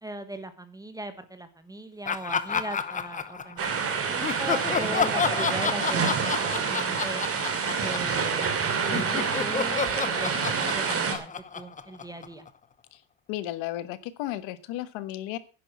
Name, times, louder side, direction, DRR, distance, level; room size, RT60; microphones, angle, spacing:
voice 1, 0.0-7.3 7.8-12.5, right 2 dB, 10° right, 10 dB, 1.2 m, -39 dB
Laughter, 2.1-3.8 4.2-8.6 8.9-12.5, left 6 dB, 15° left, 0.7 m, -30 dB
sound 1, 3.6-11.2, right 6 dB, 30° right, 2.6 m, -27 dB
voice 2, 13.3-15.4, left 14 dB, 70° left, 13 dB, 1.5 m, -34 dB
11.0 x 10.0 x 6.0 m, 0.37 s
cardioid pair, 150°, 47 cm